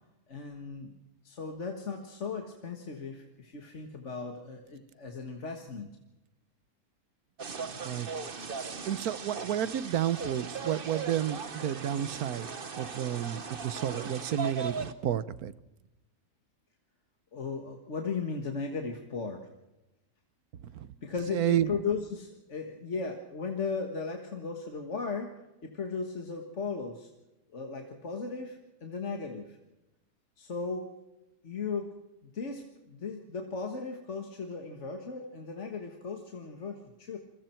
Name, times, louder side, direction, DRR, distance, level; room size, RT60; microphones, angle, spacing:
voice 1, 0.3-0.9 1.2-5.9 17.3-19.5 21.0-27.1 27.5-29.6 30.4-31.0 31.4-37.2, left 4 dB, 55° left, 3 dB, 1.9 m, -36 dB
sound 1, 7.4-14.9, right 5 dB, 40° right, 1.3 m, -38 dB
voice 2, 8.9-12.5 12.8-15.5 20.7-20.9 21.3-21.7, right 11 dB, 85° right, 16 dB, 1.4 m, -31 dB
28.0 x 22.5 x 4.5 m, 0.99 s
omnidirectional pair, 1.5 m